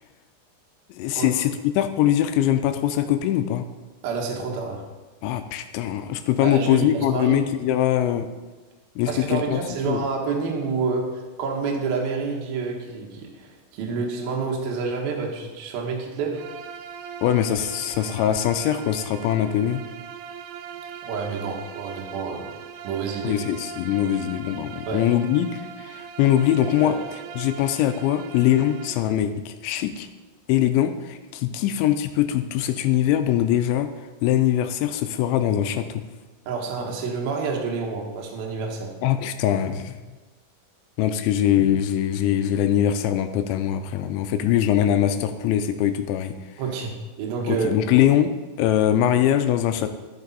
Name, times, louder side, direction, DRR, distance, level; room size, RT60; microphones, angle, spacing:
voice 1, 0.9-3.7 5.2-8.3 9.0-9.6 9.9-10.0 17.2-19.8 23.2-27.0 27.4-30.1 30.5-33.9 34.2-36.0 39.0-40.0 41.0-46.4 47.5-48.3 48.6-49.9, left 11 dB, 85° left, 9 dB, 2.6 m, -22 dB
voice 2, 4.0-4.9 6.4-7.4 9.1-16.4 21.1-22.5 22.8-23.4 24.9-25.1 26.8-27.0 36.5-38.9 46.6-47.7, right 5 dB, 70° right, 0 dB, 2.4 m, -28 dB
Bowed string instrument, 16.3-29.1, right 7 dB, 90° right, 3.2 m, -40 dB
12.0 x 6.8 x 4.1 m, 1.2 s
omnidirectional pair, 5.7 m